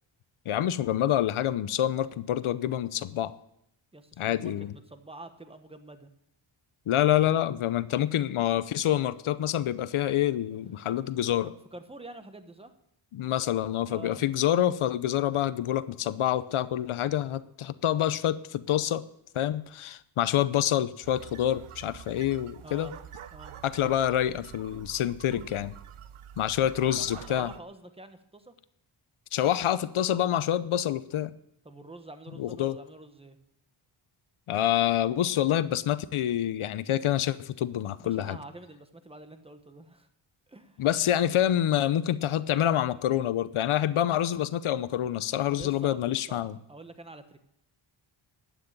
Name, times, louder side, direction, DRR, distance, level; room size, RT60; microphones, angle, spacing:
voice 1, 0.5-3.3 4.2-4.7 6.9-11.5 13.1-19.0 19.3-22.9 23.6-25.7 26.4-27.5 29.3-31.4 32.4-32.8 34.5-38.4 40.8-46.6, left 11 dB, 80° left, 15 dB, 0.7 m, -27 dB
voice 2, 3.9-6.1 11.4-12.7 13.9-14.2 22.6-22.9 23.3-23.6 26.6-28.5 31.6-33.4 38.0-40.1 40.5-40.9 45.5-47.4, right 2 dB, 10° right, 8 dB, 1.1 m, -47 dB
sound 1, 21.0-27.6, right 9 dB, 80° right, 0.9 m, -47 dB
11.5 x 9.3 x 8.7 m, 0.76 s
wide cardioid pair, 150°, 49 cm